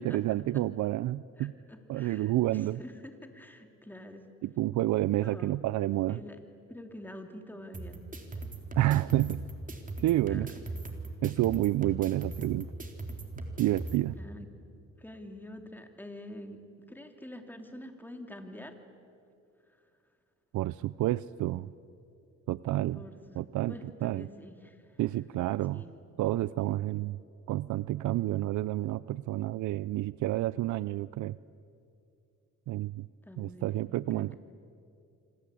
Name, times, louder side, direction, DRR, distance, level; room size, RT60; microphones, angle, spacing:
voice 1, 0.0-1.5 1.9-2.8 4.4-6.2 8.8-9.4 10.0-10.5 11.2-12.7 13.6-14.2 20.5-21.7 22.5-23.0 23.4-24.3 25.0-25.8 26.2-27.2 27.5-31.4 32.7-33.1 33.4-34.3, right 15 dB, 75° right, 18 dB, 0.5 m, -29 dB
voice 2, 1.4-4.2 5.2-5.6 6.1-6.4 6.7-8.0 10.3-10.6 14.2-14.5 15.0-18.8 22.9-25.0 25.7-25.9 33.2-34.4, left 1 dB, 5° left, 5 dB, 3.2 m, -47 dB
sound 1, 7.7-14.0, right 2 dB, 25° right, 3.8 m, -40 dB
27.0 x 26.0 x 8.5 m, 2.5 s
cardioid pair, 90°, 30 cm